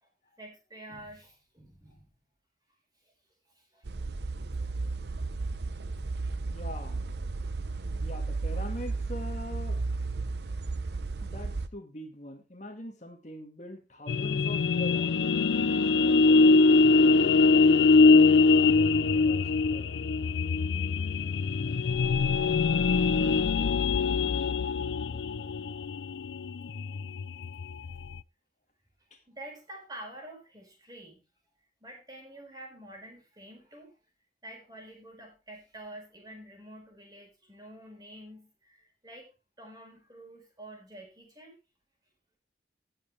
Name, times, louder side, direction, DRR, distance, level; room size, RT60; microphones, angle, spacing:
voice 1, 0.4-2.1 3.5-3.9 26.9-27.0 29.3-31.2 31.8-33.9 34.4-39.3 39.6-41.6, right 1 dB, 20° right, 1 dB, 4.6 m, -48 dB
sound 1, 3.8-11.7, right 3 dB, 65° right, 0.7 m, -34 dB
voice 2, 6.5-7.0 8.0-9.8 11.2-15.5 16.0-16.6 17.0-19.9 24.1-24.3 29.1-29.2, left 1 dB, 40° left, 4 dB, 1.8 m, -43 dB
sound 2, 14.1-28.2, left 4 dB, 75° left, 0.5 m, -23 dB
17.5 x 6.8 x 3.3 m, 0.30 s
head